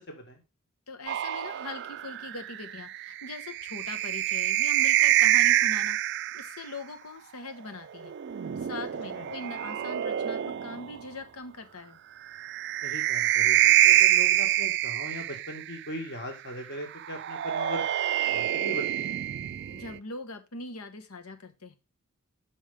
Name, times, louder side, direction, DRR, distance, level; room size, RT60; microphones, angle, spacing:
voice 1, 0.1-0.4 9.1-9.3 12.8-17.8 18.3-19.2, equal, 50° left, 3 dB, 1.9 m, -39 dB
voice 2, 0.9-6.0 6.3-8.1 8.6-12.0 19.7-21.8, left 2 dB, 85° left, 8 dB, 1.2 m, -41 dB
sound 1, 1.1-6.6 8.0-11.0 12.3-15.8 17.0-20.0, right 13 dB, 50° right, 0.3 m, -26 dB
6.2 x 5.5 x 5.0 m, 0.26 s
head